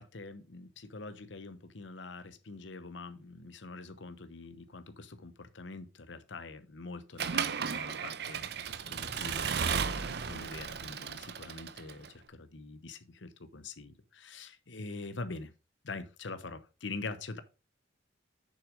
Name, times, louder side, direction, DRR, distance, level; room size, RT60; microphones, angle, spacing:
voice 1, 0.0-15.5 15.8-17.4, left 3 dB, 75° left, 0.9 m, -44 dB
Accelerating revving vroom / Mechanisms, 7.2-12.1, right 6 dB, 60° right, 0.7 m, -34 dB
6.9 x 6.0 x 5.1 m
head